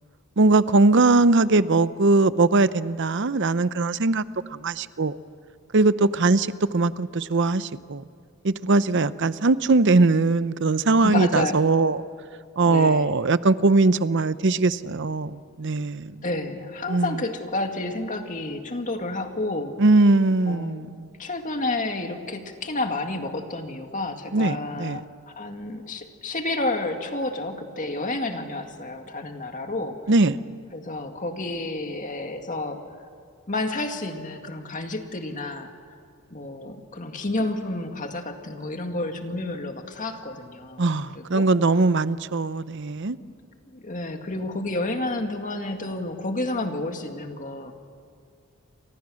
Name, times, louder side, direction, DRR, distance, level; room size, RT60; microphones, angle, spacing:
voice 1, 0.4-4.2 4.5-5.1 5.7-8.0 8.4-12.0 12.6-16.2 16.9-17.1 19.8-21.1 24.3-25.0 30.1-30.4 40.8-43.2, right 3 dB, 55° right, 15 dB, 0.7 m, -20 dB
voice 2, 10.9-11.6 12.7-13.1 16.2-19.8 20.5-20.9 21.2-30.0 30.7-32.8 33.5-35.7 36.3-41.5 43.2-43.3 43.7-47.7, left 2 dB, 35° left, 5 dB, 2.0 m, -30 dB
29.5 x 25.5 x 6.4 m, 2.3 s
head